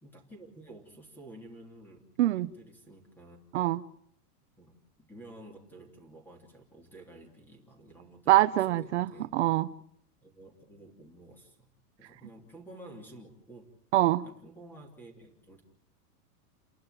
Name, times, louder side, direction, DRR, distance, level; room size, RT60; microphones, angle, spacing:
voice 1, 0.0-3.4 4.6-9.3 10.2-11.7 12.0-13.7 14.2-15.6, right 1 dB, 5° left, 3.1 m, -51 dB
voice 2, 2.2-2.5 3.5-3.8 8.3-9.7 13.9-14.3, right 16 dB, 45° right, 1.1 m, -24 dB
29.5 x 12.0 x 9.1 m
supercardioid pair, 175°, 47 cm